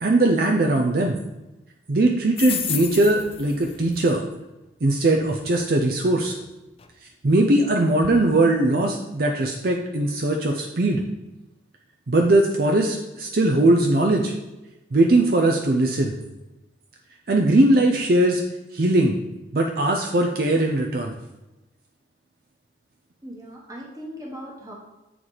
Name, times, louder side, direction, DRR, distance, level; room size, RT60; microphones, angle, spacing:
voice 1, 0.0-1.1 1.9-4.2 4.8-6.4 7.2-11.0 12.1-14.3 14.9-16.2 17.3-18.4 18.7-19.2 19.5-21.2, right 2 dB, 50° right, 1 dB, 0.5 m, -20 dB
sound 1, 2.4-4.2 5.2-5.4 6.4-6.5 6.8-6.9 7.3-7.4 8.0-8.2, left 8 dB, 30° left, 0.4 m, -33 dB
voice 2, 23.2-24.7, equal, 20° right, -2 dB, 1.3 m, -38 dB
7.8 x 4.6 x 4.0 m, 1.0 s
head